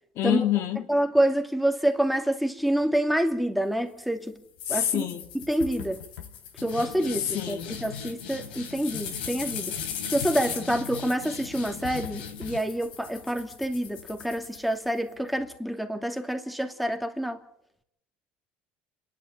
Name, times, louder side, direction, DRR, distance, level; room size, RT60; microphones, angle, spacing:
voice 1, 0.2-0.8 4.7-5.2 7.3-7.7, left 12 dB, 60° left, 2.1 m, -26 dB
voice 2, 0.9-4.3 4.7-6.0 6.6-9.8 10.1-17.4, right 1 dB, ahead, 2.6 m, -27 dB
sound 1, 4.6-15.1, left 7 dB, 85° left, 3.3 m, -38 dB
29.0 x 11.5 x 8.8 m
hypercardioid pair, 80°, 5 cm